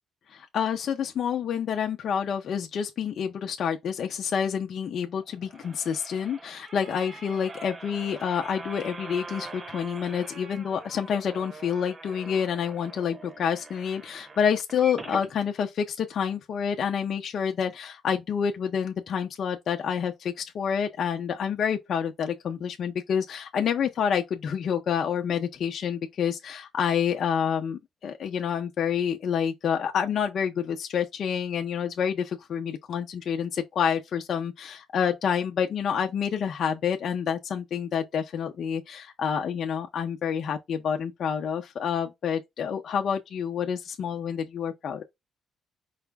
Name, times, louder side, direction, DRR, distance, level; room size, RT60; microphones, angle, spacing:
voice 1, 0.3-45.0, left 7 dB, 65° left, 0.7 m, -28 dB
sound 1, 5.2-15.3 15.8-15.9 16.2-16.3, right 3 dB, 30° right, 1.0 m, -43 dB
4.9 x 2.2 x 3.4 m
cardioid pair, 90°, 0 cm